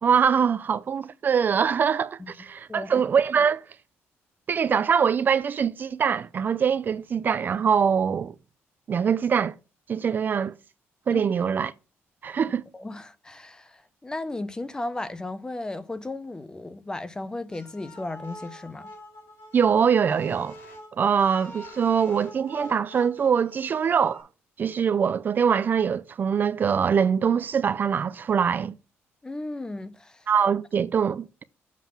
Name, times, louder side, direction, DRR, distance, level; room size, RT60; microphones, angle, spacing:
voice 1, 0.0-3.6 4.5-8.3 8.9-9.5 9.9-10.5 11.1-11.7 12.2-12.6 19.5-20.6 20.9-24.3 24.6-28.7 30.3-31.4, right 7 dB, 40° right, 0.4 m, -23 dB
voice 2, 2.7-3.0 11.1-11.2 12.7-18.9 29.2-30.3, left 2 dB, 15° left, 0.7 m, -35 dB
sound 1, 17.5-24.2, equal, 55° left, 5.1 m, -45 dB
7.3 x 5.6 x 5.9 m
cardioid pair, 110°, 5 cm